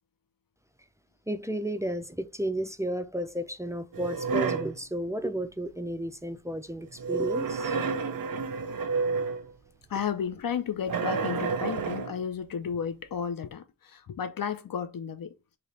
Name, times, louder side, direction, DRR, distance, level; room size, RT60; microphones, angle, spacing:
voice 1, 1.3-7.8, right 1 dB, 10° right, 0.4 m, -33 dB
sound 1, 3.9-4.8 7.0-9.5 10.9-12.2, right 5 dB, 85° right, 0.5 m, -30 dB
voice 2, 9.9-15.3, left 7 dB, 85° left, 0.6 m, -33 dB
3.3 x 2.8 x 4.0 m
wide cardioid pair, 70°, 33 cm